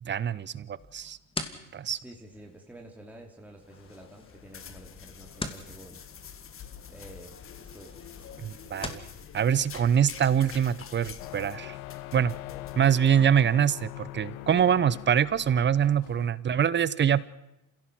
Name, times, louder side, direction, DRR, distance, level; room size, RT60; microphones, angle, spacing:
voice 1, 0.0-1.2 1.7-2.0 8.4-9.0 9.3-11.8 12.1-12.3 12.8-17.2, right 8 dB, 25° right, 19 dB, 0.8 m, -24 dB
sound 1, 0.8-9.1, left 2 dB, 10° left, 2.6 m, -44 dB
voice 2, 1.9-6.0 6.9-8.3, right 1 dB, 5° right, 0 dB, 2.9 m, -49 dB
sound 2, 3.6-13.6, left 7 dB, 30° left, 1.5 m, -47 dB
sound 3, 11.2-16.3, left 16 dB, 80° left, 1.1 m, -42 dB
28.0 x 16.5 x 6.1 m, 0.89 s
hypercardioid pair, 85°, 43 cm